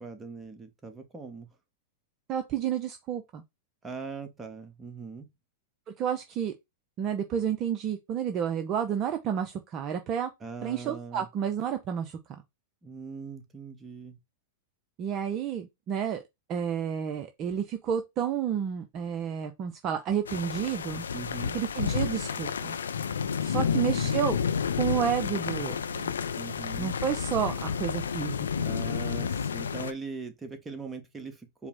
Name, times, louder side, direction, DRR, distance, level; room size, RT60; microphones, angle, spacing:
voice 1, 0.0-1.5 3.8-5.3 10.4-11.3 12.8-14.2 21.1-21.6 23.6-24.2 26.4-26.9 28.6-31.7, right 4 dB, 15° right, 0.9 m, -41 dB
voice 2, 2.3-3.4 6.0-6.5 7.0-10.3 10.6-12.1 15.0-16.2 16.5-21.1 21.5-22.8 23.4-24.4 24.8-26.1 26.8-28.5, right 8 dB, 40° right, 0.5 m, -30 dB
sound 1, 20.3-29.9, left 6 dB, 80° left, 0.3 m, -30 dB
4.7 x 2.0 x 3.5 m
hypercardioid pair, 100°, 0 cm